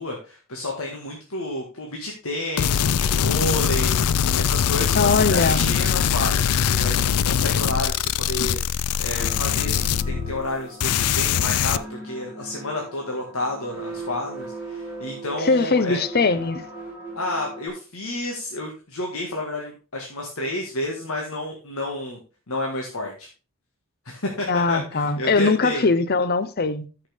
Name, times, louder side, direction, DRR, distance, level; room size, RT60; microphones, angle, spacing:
voice 1, 0.0-8.6 9.0-16.0 17.2-22.2 22.5-23.3 24.1-25.9, left 1 dB, 70° left, 1.7 m, -30 dB
sound 1, 2.6-10.5 10.8-11.8, left 8 dB, 85° left, 0.4 m, -22 dB
voice 2, 5.0-5.7 15.4-16.7 24.5-26.9, left 4 dB, 45° left, 0.7 m, -21 dB
sound 2, 9.2-17.7, right 2 dB, 5° right, 4.2 m, -38 dB
13.5 x 5.8 x 3.5 m
head